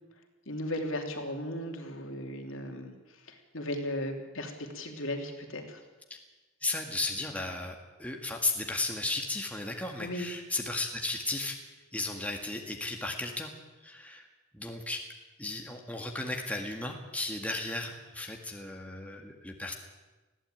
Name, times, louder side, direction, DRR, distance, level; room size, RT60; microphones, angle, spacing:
voice 1, 0.4-5.8 10.0-10.3, left 1 dB, 65° left, 4 dB, 3.1 m, -36 dB
voice 2, 6.6-11.6 11.9-13.5 13.8-14.2 14.5-15.0 15.4-19.7, left 2 dB, 5° left, 2 dB, 1.9 m, -35 dB
20.5 x 15.5 x 9.1 m, 1.2 s
head